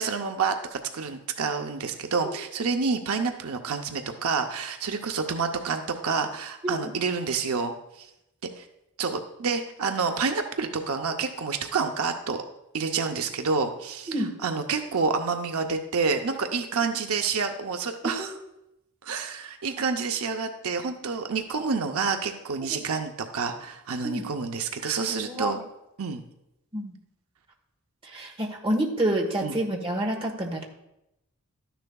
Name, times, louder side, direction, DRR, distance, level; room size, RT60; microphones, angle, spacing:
voice 1, 0.0-8.1 8.6-8.7 9.0-12.4 12.7-14.1 14.4-18.4 19.0-25.6 26.0-26.2 29.4-29.5, right 5 dB, 80° right, 5 dB, 0.7 m, -28 dB
voice 2, 24.8-25.5 26.7-26.9 28.0-30.7, right 1 dB, 25° right, 1 dB, 1.3 m, -28 dB
12.5 x 10.0 x 2.3 m, 0.87 s
head